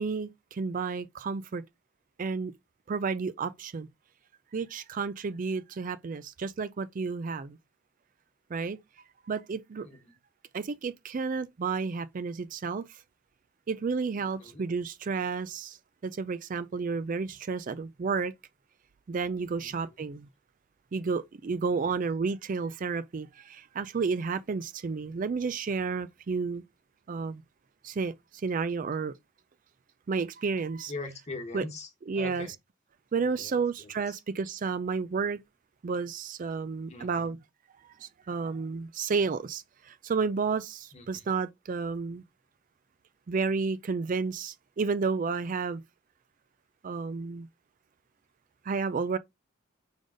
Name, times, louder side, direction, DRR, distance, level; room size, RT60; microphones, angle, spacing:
voice 1, 0.0-1.6 2.2-2.5 2.9-3.9 4.5-7.6 8.5-8.8 9.3-9.9 10.5-13.0 13.7-15.8 16.0-18.3 19.1-20.3 20.9-26.6 27.1-27.4 27.8-29.1 30.1-30.9 31.5-31.6 32.1-32.5 33.1-35.4 35.8-37.4 38.0-42.2 43.3-45.8 46.8-47.5 48.7-49.2, right 4 dB, 40° right, 0.4 m, -31 dB
voice 2, 9.8-10.2 14.2-14.6 19.6-19.9 21.7-21.9 30.9-32.5 33.2-34.2 36.9-37.4 40.9-41.3, left 3 dB, 35° left, 1.4 m, -43 dB
5.2 x 3.9 x 5.0 m
head